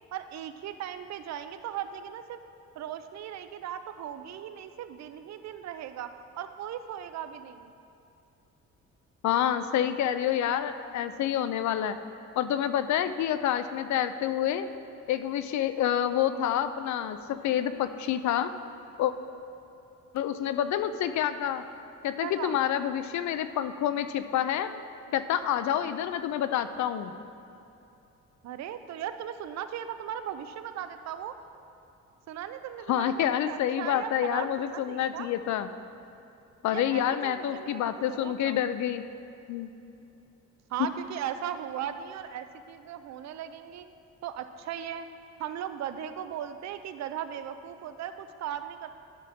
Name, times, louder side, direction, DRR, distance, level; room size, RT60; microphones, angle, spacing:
voice 1, 0.1-2.4 2.8-6.1 6.4-7.7 22.2-22.6 28.4-31.4 32.3-35.3 36.7-38.6 40.7-43.9 44.2-45.1 45.4-48.9, right 10 dB, 65° right, 10 dB, 0.5 m, -37 dB
voice 2, 9.2-12.0 12.4-14.7 15.1-18.5 19.0-19.1 20.1-21.6 22.0-24.7 25.1-27.1 32.9-35.7 36.6-39.0 39.5-39.7, left 10 dB, 70° left, 11 dB, 0.5 m, -28 dB
11.5 x 6.0 x 3.6 m, 2.8 s
cardioid pair, 125°, 29 cm